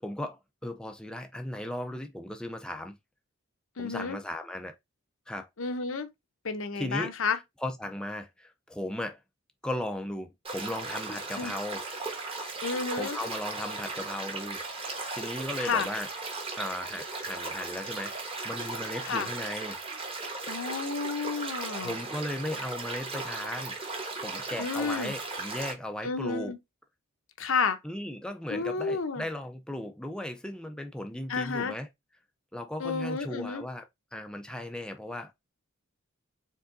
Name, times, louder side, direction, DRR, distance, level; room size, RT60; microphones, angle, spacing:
voice 1, 0.0-2.9 3.8-4.8 5.3-5.5 6.7-9.2 9.6-11.8 13.0-14.6 14.9-16.1 16.6-19.8 21.8-23.8 24.2-26.5 27.8-31.9 32.5-33.9 34.1-35.3, left 1 dB, 5° left, 0.4 m, -36 dB
voice 2, 3.8-4.2 5.6-6.1 6.4-7.4 11.4-11.5 12.6-13.2 15.6-15.9 19.1-19.3 20.5-21.9 24.6-25.1 26.0-26.6 27.4-27.8 28.5-29.2 31.3-31.7 32.8-33.6, left 5 dB, 70° left, 0.7 m, -31 dB
sound 1, 10.4-25.7, right 3 dB, 25° right, 1.1 m, -37 dB
4.7 x 3.7 x 2.5 m
head